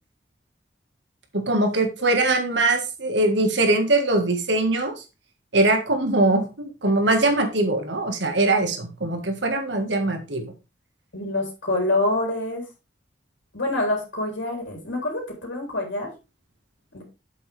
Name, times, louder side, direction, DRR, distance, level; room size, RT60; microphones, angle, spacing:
voice 1, 1.3-4.9 5.5-10.5, right 2 dB, 75° right, 5 dB, 1.8 m, -22 dB
voice 2, 11.1-12.6 13.5-16.1 16.9-17.0, left 2 dB, 80° left, 0 dB, 3.4 m, -26 dB
7.8 x 7.7 x 3.5 m, 0.28 s
head